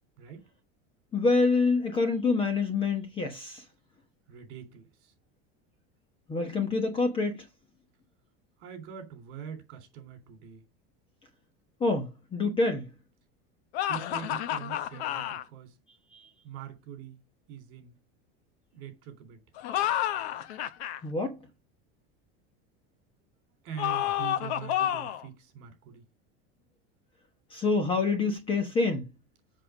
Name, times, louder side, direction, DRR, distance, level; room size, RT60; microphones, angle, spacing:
voice 1, 1.1-3.6 6.3-7.4 11.8-12.9 16.1-16.2 21.0-21.4 27.5-29.0, left 3 dB, 15° left, 1.1 m, -26 dB
voice 2, 4.3-5.1 8.6-10.6 13.9-15.7 16.4-17.2 17.5-18.0 18.7-19.4 23.6-26.0, right 8 dB, 40° right, 3.5 m, -43 dB
sound 1, 13.7-15.4 19.6-21.0 23.8-25.3, left 12 dB, 90° left, 1.1 m, -30 dB
7.7 x 6.5 x 5.0 m
cardioid pair, 180°, 31 cm